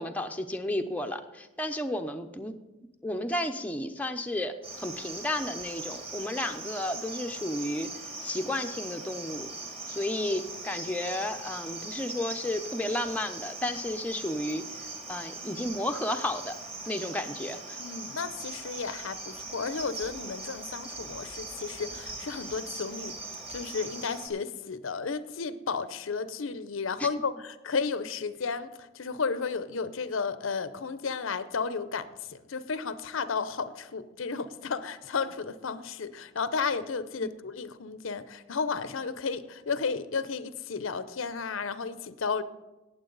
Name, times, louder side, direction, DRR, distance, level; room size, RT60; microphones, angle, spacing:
voice 1, 0.0-2.5 3.0-7.9 8.2-9.5 9.9-14.6 15.1-16.5 16.9-17.8 27.0-27.1 37.2-37.3, left 1 dB, 5° left, 5 dB, 0.6 m, -32 dB
Cricket, 4.6-24.3, right 3 dB, 25° right, 2.0 m, -40 dB
voice 2, 17.8-23.1 23.5-42.4, left 5 dB, 75° left, 14 dB, 0.6 m, -33 dB
18.0 x 7.4 x 3.9 m, 1.1 s
head